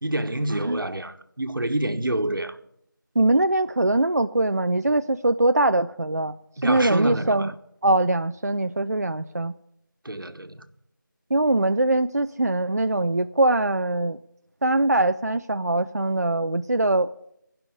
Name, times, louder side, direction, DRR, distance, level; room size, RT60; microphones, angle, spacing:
voice 1, 0.0-2.6 6.6-7.5 10.0-10.6, right 1 dB, 85° right, 1.2 m, -27 dB
voice 2, 3.2-6.4 6.6-7.5 7.8-9.5 11.3-14.2 14.6-17.1, right 2 dB, 50° right, 0.4 m, -22 dB
16.5 x 5.6 x 9.3 m
figure-of-eight pair, 175°, 11 cm